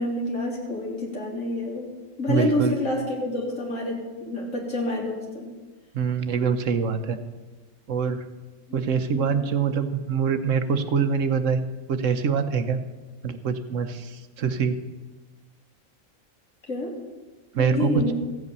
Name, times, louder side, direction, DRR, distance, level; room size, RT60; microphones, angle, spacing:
voice 1, 0.0-1.9 2.2-5.5 9.1-9.5 16.7-16.9 17.6-18.1, left 1 dB, 75° left, -1 dB, 3.3 m, -28 dB
voice 2, 2.3-2.7 5.9-7.2 7.9-8.2 8.7-12.8 13.2-14.8 17.5-18.0, right 6 dB, 70° right, 9 dB, 1.2 m, -24 dB
15.0 x 8.3 x 6.7 m, 1.3 s
omnidirectional pair, 1.4 m